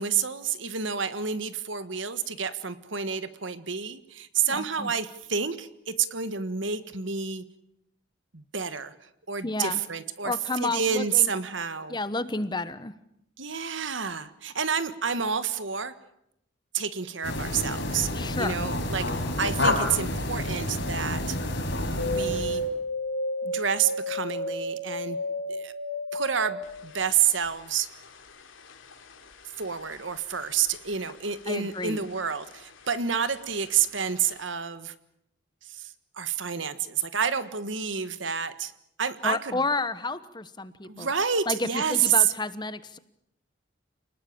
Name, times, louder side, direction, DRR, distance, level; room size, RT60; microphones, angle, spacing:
voice 1, 0.0-7.4 8.3-12.0 13.4-15.9 16.7-18.1 18.4-19.1 19.4-21.4 22.0-22.6 23.4-25.2 25.5-25.7 26.1-27.9 29.6-34.9 35.6-38.7 39.0-39.6 40.8-42.3, right 7 dB, 75° right, 12 dB, 1.6 m, -29 dB
voice 2, 4.5-4.9 9.4-9.8 10.2-11.3 11.9-12.9 18.1-18.6 31.5-32.0 39.2-41.1 41.5-43.0, left 3 dB, 20° left, 13 dB, 1.1 m, -31 dB
sound 1, 17.2-22.7, left 1 dB, 65° left, 5.0 m, -29 dB
sound 2, 22.0-31.4 31.6-32.5 32.8-33.8 34.2-34.3, equal, 85° left, 3.2 m, -33 dB
28.5 x 20.0 x 8.7 m, 0.79 s
head